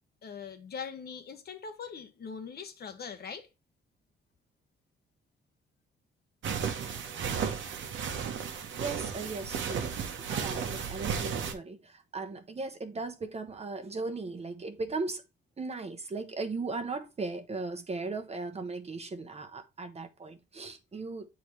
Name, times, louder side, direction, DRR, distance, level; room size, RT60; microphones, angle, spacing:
voice 1, 0.2-3.5, left 6 dB, 50° left, 1.1 m, -41 dB
sound 1, 6.4-11.5, right 7 dB, 70° right, 1.2 m, -34 dB
voice 2, 8.8-15.2 15.6-21.3, right 3 dB, 30° right, 1.1 m, -37 dB
8.4 x 4.0 x 3.1 m
cardioid pair, 90°, 20 cm